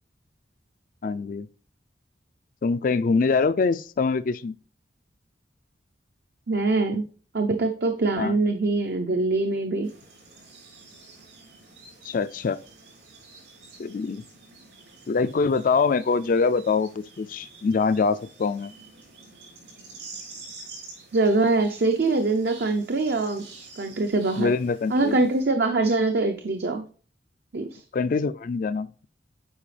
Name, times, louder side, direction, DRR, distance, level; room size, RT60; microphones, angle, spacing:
voice 1, 1.0-1.5 2.6-4.5 8.2-8.4 12.0-12.6 13.8-14.2 15.1-18.7 24.4-25.2 27.9-29.1, left 4 dB, 50° left, 0.3 m, -24 dB
voice 2, 6.5-7.1 7.3-9.9 21.1-23.4 23.8-24.5 24.9-26.8 27.5-27.8, right 3 dB, 60° right, 0.6 m, -23 dB
sound 1, 9.8-25.4, right 3 dB, 75° right, 4.2 m, -48 dB
8.7 x 4.9 x 3.3 m
head